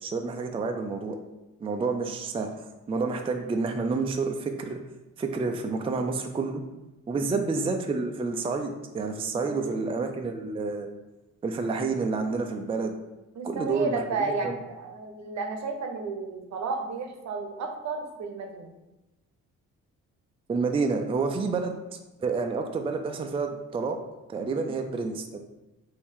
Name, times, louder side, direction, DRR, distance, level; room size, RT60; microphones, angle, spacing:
voice 1, 0.0-1.2 1.6-2.5 2.9-4.8 5.2-6.6 7.1-10.9 11.4-13.0 13.4-14.0 14.4-14.6 20.5-24.0 24.3-25.4, right 4 dB, 20° right, 4 dB, 0.4 m, -29 dB
voice 2, 9.5-9.9 13.3-18.7 21.4-21.5, right 4 dB, 65° right, 5 dB, 0.7 m, -33 dB
3.5 x 2.7 x 4.5 m, 1.0 s
cardioid pair, 90°, 30 cm